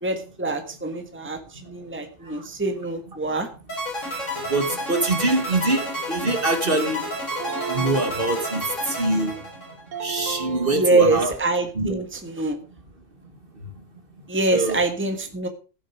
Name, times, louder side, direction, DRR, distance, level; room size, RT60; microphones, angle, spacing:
voice 1, 0.0-3.5 10.7-12.6 14.3-15.5, right 2 dB, 10° right, 6 dB, 1.7 m, -24 dB
sound 1, 3.7-10.0, equal, 65° left, 6.8 m, -30 dB
voice 2, 4.5-7.0 7.7-9.3 10.0-11.3 11.8-12.0 14.5-14.8, right 2 dB, 45° right, 6 dB, 2.3 m, -24 dB
sound 2, 7.3-8.9 9.9-11.5, right 6 dB, 70° right, 1.5 m, -34 dB
16.0 x 8.1 x 5.0 m, 0.34 s
omnidirectional pair, 1.4 m